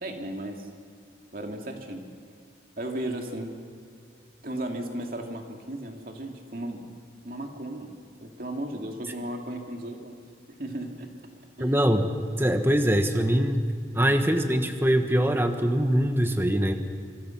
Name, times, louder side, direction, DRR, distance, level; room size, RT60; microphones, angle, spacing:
voice 1, 0.0-0.7 1.3-2.1 2.8-3.6 4.4-6.9 7.2-7.9 8.2-10.2 10.5-11.1 11.6-11.8 12.7-12.8 13.4-13.5 13.9-14.2, right 1 dB, 50° right, 2 dB, 2.7 m, -35 dB
voice 2, 11.6-12.1 12.4-13.7 13.9-16.7, equal, 10° right, 6 dB, 1.3 m, -23 dB
26.0 x 25.0 x 6.1 m, 2.3 s
head